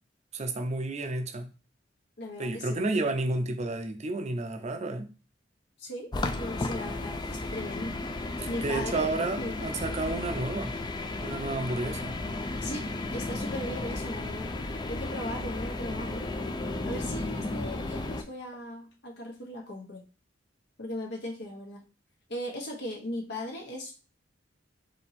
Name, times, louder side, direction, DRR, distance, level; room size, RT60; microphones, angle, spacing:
voice 1, 0.3-1.5 2.4-5.1 8.4-10.7 11.2-12.2, right 2 dB, 35° right, 0.5 m, -31 dB
voice 2, 2.2-2.9 5.8-8.0 8.5-9.1 9.4-9.6 12.6-14.5 14.8-16.3 16.9-20.0 20.8-21.8 22.3-23.9, left 1 dB, 65° left, 1.1 m, -38 dB
sound 1, 6.1-18.2, left 2 dB, 25° left, 0.4 m, -34 dB
4.3 x 2.9 x 4.1 m
head